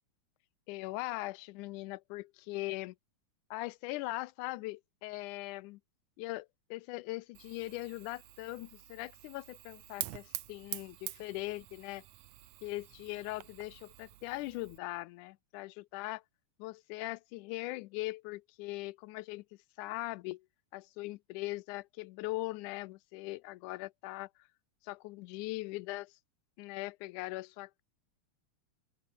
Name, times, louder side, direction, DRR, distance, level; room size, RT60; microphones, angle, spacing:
voice 1, 0.7-3.0 3.5-5.8 6.2-12.0 12.6-16.2 16.6-19.4 19.8-20.5 20.7-24.3 24.8-26.1 26.6-27.8, left 20 dB, 90° left, 2.1 m, -40 dB
Fire, 7.3-14.8, right 16 dB, 80° right, 2.3 m, -46 dB
open air
omnidirectional pair, 3.5 m